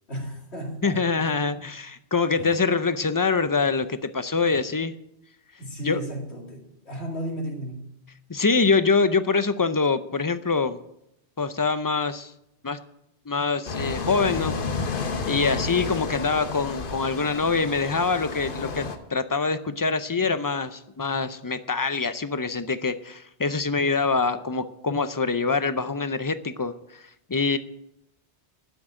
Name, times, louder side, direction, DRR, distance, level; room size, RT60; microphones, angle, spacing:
voice 1, 0.1-1.6 2.4-2.7 5.6-8.0 15.3-15.8, equal, 75° left, 0 dB, 2.8 m, -35 dB
voice 2, 0.8-4.9 5.8-6.0 8.3-10.8 11.4-12.3 12.6-12.8 13.3-14.5 15.3-27.6, left 4 dB, 30° left, 11 dB, 0.3 m, -25 dB
sound 1, 13.7-19.0, left 4 dB, 55° left, 1.1 m, -31 dB
11.5 x 6.3 x 8.9 m, 0.82 s
omnidirectional pair, 1.1 m